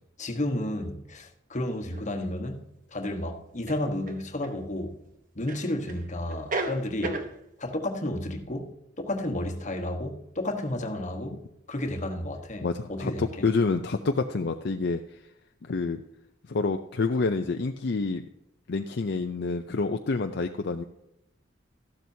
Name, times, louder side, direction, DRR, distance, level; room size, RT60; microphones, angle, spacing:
voice 1, 0.2-5.0 5.3-7.2 7.6-11.4 11.7-13.5, left 1 dB, 40° left, 1.3 m, -32 dB
sound 1, 1.9-2.0 3.7-4.6 5.5-6.0 6.3-7.3, right 2 dB, 45° right, 1.0 m, -33 dB
voice 2, 12.6-15.2 15.7-16.0 16.5-18.2 18.7-20.8, left 3 dB, 55° left, 0.5 m, -28 dB
14.0 x 12.0 x 2.8 m
head